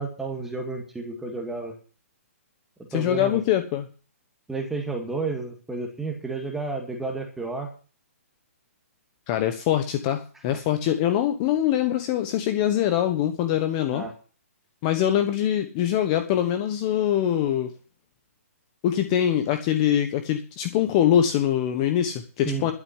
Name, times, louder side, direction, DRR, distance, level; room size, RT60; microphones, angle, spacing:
voice 1, 0.0-1.8 2.9-3.4 4.5-7.7 13.9-14.1 22.4-22.7, right 3 dB, 5° right, 3 dB, 1.9 m, -31 dB
voice 2, 2.9-3.9 9.3-14.0 14.8-17.7 18.8-22.7, left 10 dB, 25° left, 7 dB, 1.2 m, -23 dB
12.0 x 7.0 x 9.7 m, 0.38 s
hypercardioid pair, 160°, 8 cm